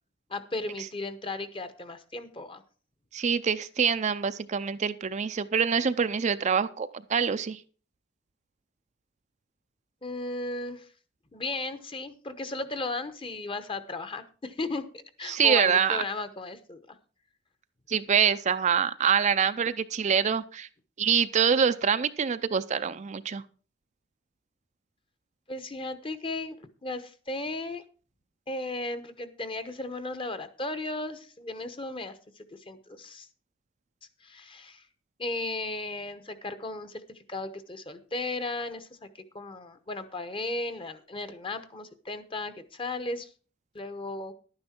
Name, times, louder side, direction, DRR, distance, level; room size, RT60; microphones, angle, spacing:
voice 1, 0.3-2.6 10.0-10.9 11.3-17.0 25.5-27.8 28.5-33.3 34.2-34.8 35.2-43.3 43.7-44.3, left 2 dB, 25° left, 11 dB, 0.9 m, -35 dB
voice 2, 3.1-7.6 15.3-16.0 17.9-20.7 21.0-23.4, right 7 dB, 40° right, 11 dB, 0.4 m, -25 dB
11.5 x 9.7 x 4.4 m, 0.38 s
head